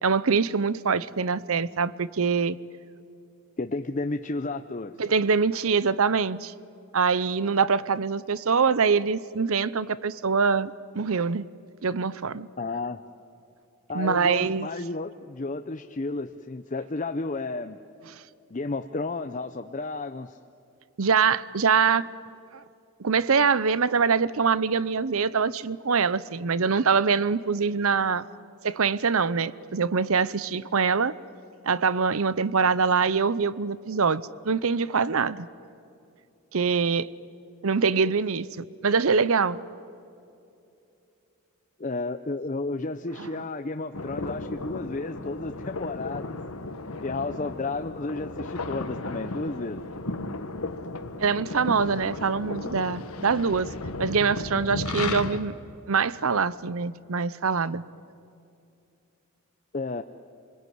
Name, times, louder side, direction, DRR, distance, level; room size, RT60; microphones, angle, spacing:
voice 1, 0.0-2.6 5.0-6.5 6.9-11.4 11.8-12.5 13.9-14.7 21.0-22.1 22.5-22.6 23.0-28.3 28.6-31.1 31.6-35.5 36.5-37.1 37.6-39.6 43.2-43.3 51.2-53.7 54.0-55.5 55.9-57.8, right 5 dB, 70° right, 18 dB, 0.7 m, -24 dB
voice 2, 3.6-5.0 12.6-13.0 13.9-17.8 18.5-20.4 41.8-46.4 47.0-49.8 59.7-60.0, left 3 dB, 35° left, 7 dB, 0.6 m, -32 dB
sound 1, 43.9-55.4, left 2 dB, 80° left, 1.6 m, -35 dB
28.0 x 21.5 x 9.4 m, 2.7 s
head